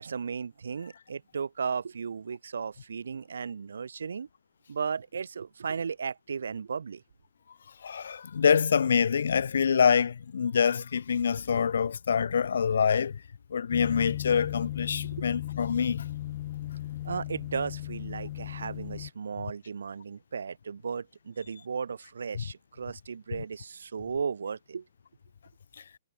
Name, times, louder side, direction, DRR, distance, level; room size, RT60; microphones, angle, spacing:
voice 1, 0.0-4.3 4.7-7.0 15.1-15.3 17.0-24.9, right 6 dB, 80° right, 6.9 m, -35 dB
voice 2, 7.8-13.2 13.5-16.0, left 7 dB, 75° left, 6.0 m, -25 dB
sound 1, 13.7-19.1, left 14 dB, 50° left, 6.3 m, -36 dB
hypercardioid pair, 130°, 0 cm